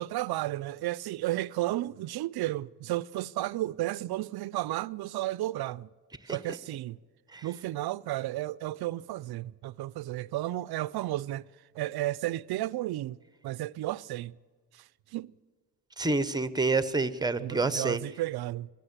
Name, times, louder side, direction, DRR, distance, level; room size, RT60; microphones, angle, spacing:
voice 1, 0.0-5.9 6.3-7.0 7.4-11.5 11.7-13.2 13.4-14.3 14.7-14.8 15.1-15.3 17.4-18.7, right 15 dB, 60° right, 0.5 m, -33 dB
voice 2, 16.0-18.0, right 3 dB, 10° right, 0.8 m, -28 dB
22.0 x 16.0 x 8.1 m
cardioid pair, 100°, 43 cm